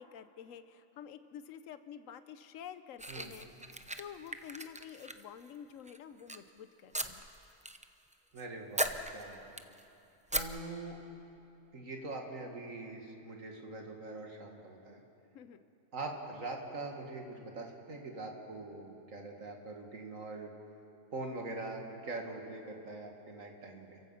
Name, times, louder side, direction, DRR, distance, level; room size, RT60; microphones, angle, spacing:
voice 1, 0.0-7.3 15.3-15.6, left 8 dB, 80° left, 12 dB, 1.1 m, -49 dB
sound 1, 3.0-5.5 5.9-6.4 6.9-7.8 8.1-8.4 8.8-9.8 10.3-10.4, right 1 dB, 10° right, 0.4 m, -38 dB
voice 2, 8.3-8.9 9.1-9.4 10.3-11.0 11.7-15.0 15.9-20.5 21.1-24.0, right 2 dB, 80° right, 2 dB, 2.4 m, -43 dB
29.5 x 15.5 x 5.7 m, 2.8 s
omnidirectional pair, 1.3 m